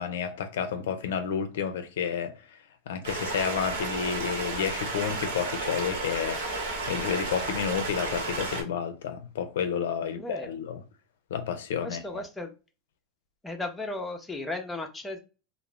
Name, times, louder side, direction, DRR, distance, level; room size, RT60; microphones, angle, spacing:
voice 1, 0.0-2.6 2.9-6.4 6.9-10.8 11.3-12.2, left 7 dB, 90° left, 0.4 m, -31 dB
Stream, 3.0-8.6, right 2 dB, 85° right, 0.9 m, -32 dB
voice 2, 10.1-10.5 11.8-12.5 13.4-15.2, left 2 dB, 10° left, 0.5 m, -35 dB
2.3 x 2.0 x 3.0 m
supercardioid pair, 135°, 0 cm